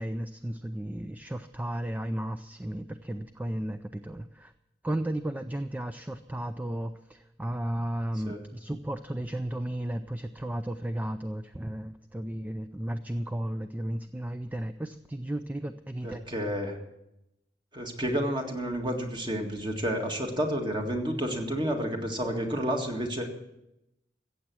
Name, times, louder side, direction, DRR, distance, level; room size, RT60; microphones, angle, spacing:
voice 1, 0.0-4.5 4.8-16.2, right 1 dB, 10° right, 9 dB, 0.4 m, -34 dB
voice 2, 16.0-16.8 17.7-23.3, equal, 25° right, 2 dB, 1.9 m, -30 dB
15.0 x 8.2 x 7.6 m, 0.88 s
head